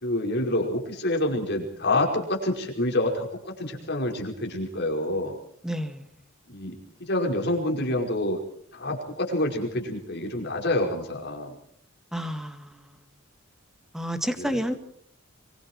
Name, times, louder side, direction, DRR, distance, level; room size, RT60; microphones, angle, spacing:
voice 1, 0.0-5.4 6.5-8.4 8.7-11.6 14.4-14.8, left 1 dB, 50° left, 1 dB, 5.2 m, -27 dB
voice 2, 5.6-6.1 12.1-13.1 13.9-14.7, equal, ahead, 7 dB, 1.9 m, -30 dB
25.0 x 24.0 x 4.7 m, 0.62 s
head